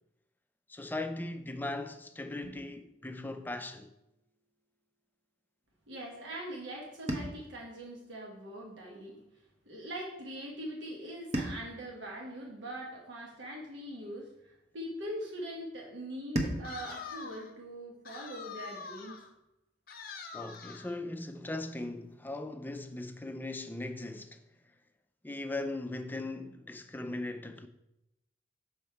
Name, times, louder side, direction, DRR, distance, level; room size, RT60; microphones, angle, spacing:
voice 1, 0.7-3.9 20.3-24.4 25.2-27.7, left 2 dB, 10° left, 0.4 m, -39 dB
sound 1, 2.4-4.6 7.1-9.4 11.3-13.8 16.3-18.9, right 1 dB, 35° right, 0.8 m, -41 dB
voice 2, 5.9-9.2 9.7-19.2, equal, 75° right, 1.2 m, -42 dB
sound 2, 16.6-17.5 18.1-19.3 19.9-21.0, left 5 dB, 50° left, 0.7 m, -45 dB
6.3 x 5.4 x 4.5 m
head